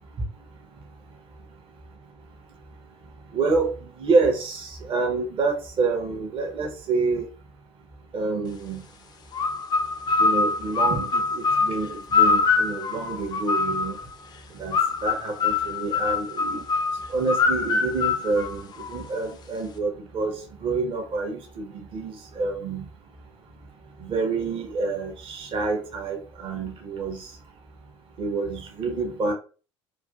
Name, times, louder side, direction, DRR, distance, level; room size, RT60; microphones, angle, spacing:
voice 1, 3.3-3.7 4.0-7.2 8.1-8.8 10.2-13.9 14.5-16.6 17.1-21.7 21.9-22.8 24.0-27.3 28.2-29.3, right 3 dB, 35° right, 2 dB, 0.6 m, -27 dB
sound 1, 9.3-14.1 14.7-19.2, left 4 dB, 25° left, 0.4 m, -24 dB
2.5 x 2.4 x 2.2 m, 0.35 s
figure-of-eight pair, 65°, 15 cm